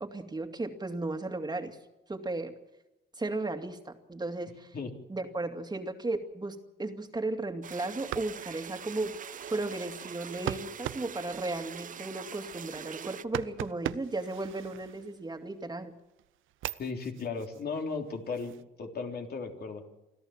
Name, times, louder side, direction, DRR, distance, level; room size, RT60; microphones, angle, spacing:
voice 1, 0.0-1.8 2.1-2.5 3.2-4.8 5.1-9.2 9.5-15.9, right 2 dB, 20° right, 6 dB, 2.4 m, -35 dB
sound 1, 7.6-13.2, right 8 dB, 40° right, 0.7 m, -43 dB
sound 2, 7.9-15.5 16.0-18.6, right 14 dB, 85° right, 0.7 m, -42 dB
voice 2, 16.8-18.5 18.8-19.8, left 4 dB, 55° left, 3 dB, 3.6 m, -35 dB
25.5 x 14.0 x 7.5 m, 0.96 s
cardioid pair, 90°, 20 cm